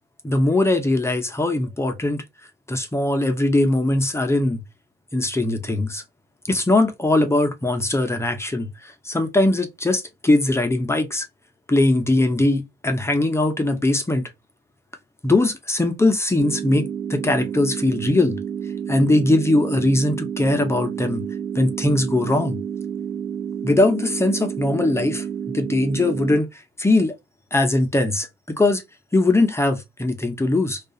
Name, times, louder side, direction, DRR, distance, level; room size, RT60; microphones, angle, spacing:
voice 1, 0.2-2.2 2.7-4.6 5.1-6.0 6.5-11.3 11.7-14.3 15.2-18.4 18.9-21.2 21.5-22.6 23.6-25.3 25.5-27.1 27.5-28.8 29.1-30.8, left 2 dB, 15° left, 0.6 m, -20 dB
sound 1, 16.4-26.4, right 8 dB, 70° right, 0.9 m, -30 dB
2.3 x 2.3 x 2.6 m
cardioid pair, 90°, 20 cm